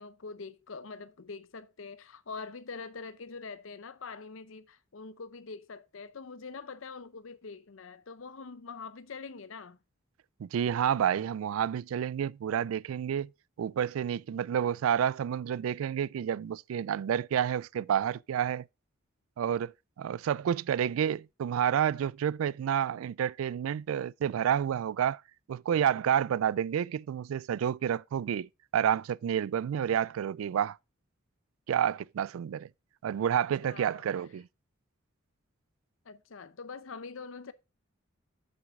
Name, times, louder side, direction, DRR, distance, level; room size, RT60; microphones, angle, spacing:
voice 1, 0.0-9.8 33.3-33.4 33.6-34.1 36.0-37.5, left 4 dB, 70° left, 0.7 m, -44 dB
voice 2, 10.4-13.3 13.6-18.7 19.4-25.2 25.5-30.8 31.7-32.7 33.0-34.5, right 9 dB, 80° right, 0.3 m, -29 dB
7.8 x 7.2 x 3.6 m
head